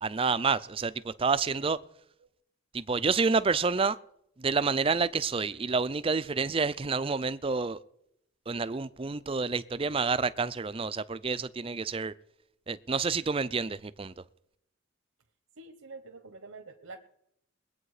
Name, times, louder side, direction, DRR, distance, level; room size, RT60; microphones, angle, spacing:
voice 1, 0.0-1.8 2.7-4.0 4.4-7.8 8.5-12.1 12.7-14.1, right 4 dB, 25° right, 0.5 m, -28 dB
voice 2, 15.6-17.0, right 3 dB, 85° right, 1.0 m, -46 dB
21.5 x 8.6 x 4.9 m
head